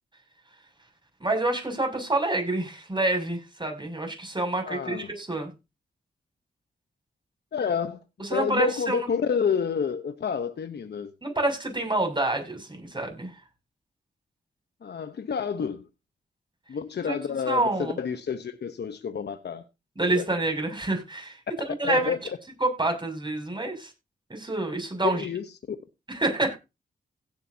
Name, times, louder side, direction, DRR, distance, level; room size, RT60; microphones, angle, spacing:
voice 1, 1.2-5.5 8.2-9.0 11.2-13.3 17.1-17.2 17.5-18.0 20.0-21.4 21.7-22.1 22.6-23.9 24.3-25.2 26.1-26.6, right 2 dB, 25° right, 6.9 m, -27 dB
voice 2, 4.6-5.1 7.5-8.0 8.3-11.1 14.8-15.9 16.7-19.6 20.1-20.3 21.8-22.4 25.0-25.8, left 6 dB, 65° left, 1.0 m, -29 dB
16.5 x 8.7 x 2.8 m
supercardioid pair, 40°, 19 cm